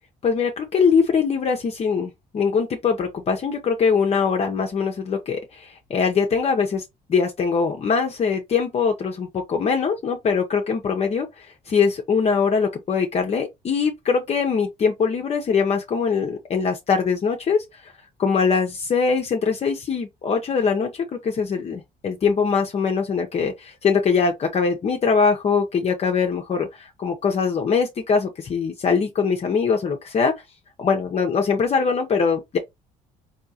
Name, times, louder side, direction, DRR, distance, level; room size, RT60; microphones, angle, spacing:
voice 1, 0.2-6.8 7.1-17.9 18.2-30.3 30.8-32.6, left 5 dB, 40° left, 0.7 m, -22 dB
3.6 x 2.8 x 2.8 m
cardioid pair, 110°, 17 cm